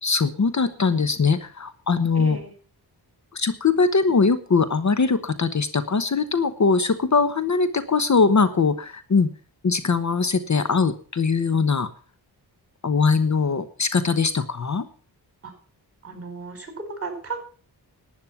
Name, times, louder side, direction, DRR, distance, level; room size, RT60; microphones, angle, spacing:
voice 1, 0.0-2.4 3.3-9.3 9.6-11.9 12.8-14.8, left 4 dB, 45° left, 12 dB, 1.1 m, -21 dB
voice 2, 2.1-2.5 15.4-15.5 16.0-17.4, right 4 dB, 35° right, 7 dB, 5.0 m, -34 dB
12.0 x 9.5 x 7.1 m, 0.41 s
wide cardioid pair, 85°, 41 cm